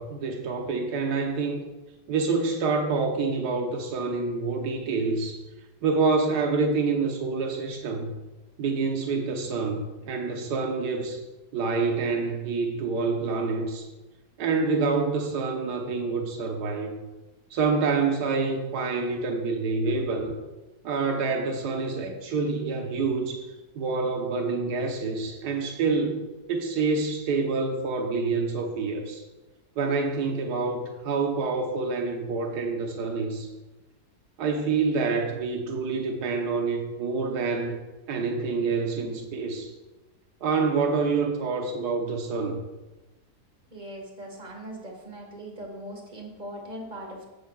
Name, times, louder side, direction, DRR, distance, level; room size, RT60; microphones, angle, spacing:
voice 1, 0.0-1.6 2.1-5.4 5.8-8.1 8.6-11.2 11.5-13.8 14.4-16.9 17.5-20.3 20.8-29.2 29.8-33.5 34.4-37.8 38.1-39.7 40.4-42.6, right 4 dB, 75° right, 3 dB, 1.6 m, -27 dB
voice 2, 43.7-47.3, right 1 dB, 30° right, 0 dB, 1.8 m, -40 dB
15.5 x 6.8 x 2.4 m, 1.1 s
omnidirectional pair, 1.8 m